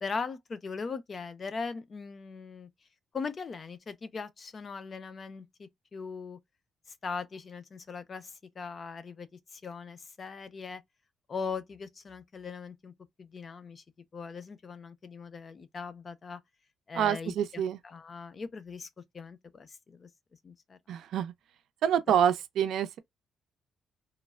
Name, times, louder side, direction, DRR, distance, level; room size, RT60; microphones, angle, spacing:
voice 1, 0.0-2.7 3.1-6.4 7.0-10.8 11.3-12.9 13.2-13.8 14.1-16.4 16.9-18.9 19.1-20.1 20.4-20.8, left 5 dB, 40° left, 0.5 m, -40 dB
voice 2, 16.9-17.8 20.9-21.3 21.8-23.0, right 9 dB, 75° right, 0.5 m, -27 dB
3.1 x 2.1 x 2.3 m
cardioid pair, 90°, 0 cm